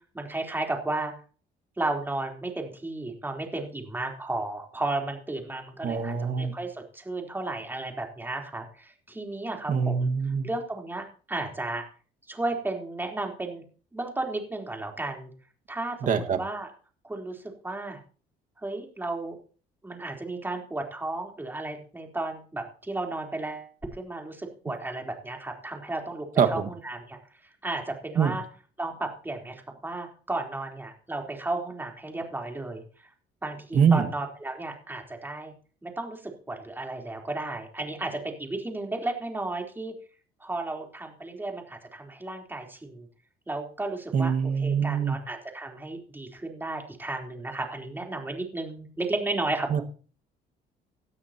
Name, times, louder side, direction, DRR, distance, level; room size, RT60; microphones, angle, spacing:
voice 1, 0.1-1.1 1.8-10.1 10.4-11.8 12.3-13.6 13.9-15.3 15.7-16.7 17.0-18.0 18.6-19.4 19.8-27.2 27.6-28.4 28.8-32.8 33.4-35.5 35.8-39.9 40.4-43.1 43.5-44.3 44.6-49.8, right 2 dB, 10° right, 2 dB, 3.9 m, -33 dB
voice 2, 5.8-6.5 9.7-10.5 16.0-16.4 26.4-26.7 28.2-28.3 33.7-34.1 44.1-45.1 49.7-49.8, right 6 dB, 50° right, 6 dB, 1.8 m, -24 dB
18.5 x 12.5 x 3.0 m, 0.39 s
cardioid pair, 110°, 17 cm